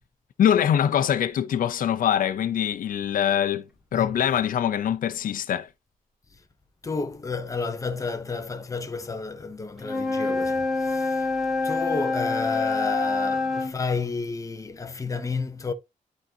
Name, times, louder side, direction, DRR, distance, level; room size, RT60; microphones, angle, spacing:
voice 1, 0.4-3.6 3.9-5.7, left 9 dB, 70° left, 0.7 m, -23 dB
voice 2, 6.8-11.3 11.6-15.7, left 4 dB, 20° left, 0.9 m, -31 dB
Wind instrument woodwind instrument, 9.8-13.8, left 3 dB, ahead, 2.0 m, -26 dB
11.5 x 3.9 x 2.8 m
wide cardioid pair, 165°, 15 cm